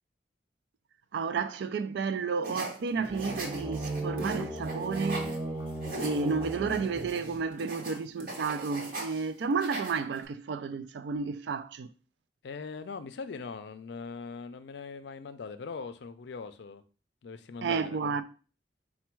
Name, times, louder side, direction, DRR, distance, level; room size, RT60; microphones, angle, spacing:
voice 1, 1.1-5.4 6.0-11.9 17.6-18.2, right 5 dB, 70° right, 0.3 m, -32 dB
sound 1, 2.4-5.4 5.7-9.3 9.5-10.2, right 2 dB, 50° right, 1.1 m, -40 dB
sound 2, 2.9-7.7, right 2 dB, 15° right, 0.6 m, -36 dB
voice 2, 12.4-16.8 17.2-18.2, left 4 dB, 70° left, 0.4 m, -41 dB
4.3 x 2.2 x 4.4 m
head